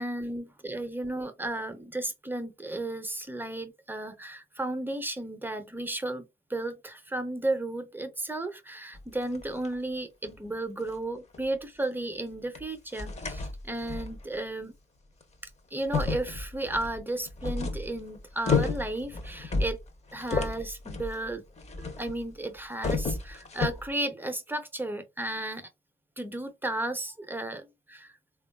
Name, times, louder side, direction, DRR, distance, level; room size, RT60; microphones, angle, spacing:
voice 1, 0.0-14.7 15.7-19.8 20.1-21.4 21.8-25.7 26.2-28.2, right 2 dB, 10° right, 0.6 m, -34 dB
sound 1, 9.0-9.7 10.3-10.4 10.8-10.9 11.3-11.5 12.6-12.7 12.9-14.2 15.2-15.3 15.8-22.3 22.6-23.9, left 4 dB, 35° left, 0.7 m, -32 dB
3.3 x 2.3 x 2.2 m
cardioid pair, 90°, 20 cm